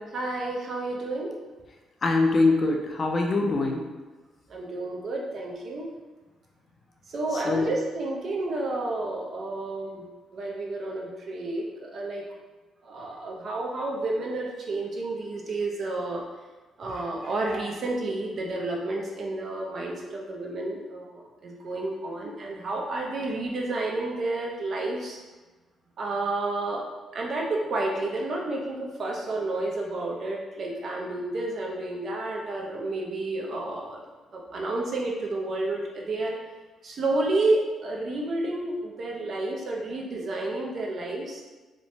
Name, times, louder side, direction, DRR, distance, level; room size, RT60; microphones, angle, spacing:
voice 1, 0.1-1.3 4.5-5.9 7.1-10.1 10.3-12.3 12.8-16.2 16.8-25.2 26.0-26.8 27.1-34.0 34.3-36.4 36.8-41.4, right 2 dB, 55° right, -1 dB, 0.5 m, -30 dB
voice 2, 2.0-3.8 7.5-7.7, left 3 dB, 40° left, 2 dB, 0.4 m, -23 dB
3.0 x 2.1 x 2.6 m, 1.2 s
cardioid pair, 90°, 0 cm